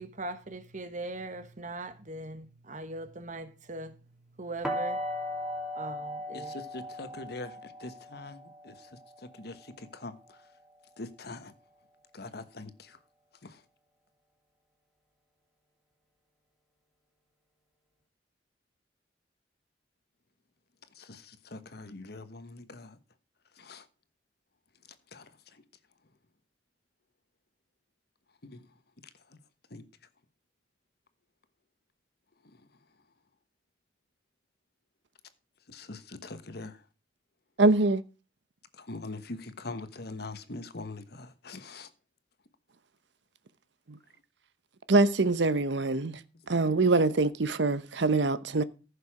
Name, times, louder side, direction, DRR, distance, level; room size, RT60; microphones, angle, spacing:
voice 1, 0.0-3.9 4.4-5.0 5.7-6.5, right 2 dB, 45° right, 1.4 m, -40 dB
sound 1, 4.6-10.5, equal, ahead, 2.6 m, -38 dB
voice 2, 6.3-10.4 11.0-11.5 12.1-13.0 13.4-13.6 20.9-23.0 23.5-23.9 25.1-25.6 28.4-28.7 29.3-29.4 29.7-29.8 32.6-32.7 35.7-36.8 38.7-41.9 46.7-46.8, left 2 dB, 60° left, 1.3 m, -43 dB
voice 3, 37.6-38.0 44.9-46.2 46.5-48.6, right 3 dB, 80° right, 0.8 m, -24 dB
14.5 x 6.8 x 4.9 m
head